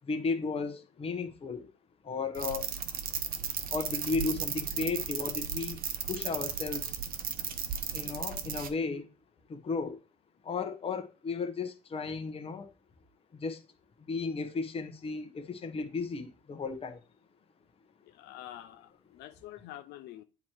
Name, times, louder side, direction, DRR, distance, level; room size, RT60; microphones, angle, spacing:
voice 1, 0.0-1.7 2.0-2.7 3.7-5.8 6.1-7.0 7.9-9.1 9.5-10.0 10.4-12.7 13.3-13.6 14.0-17.0, left 4 dB, 35° left, 1.0 m, -34 dB
sound 1, 2.3-8.7, right 7 dB, 60° right, 0.9 m, -35 dB
voice 2, 18.0-20.2, left 13 dB, 80° left, 0.6 m, -47 dB
8.3 x 3.0 x 4.5 m
cardioid pair, 110°, 17 cm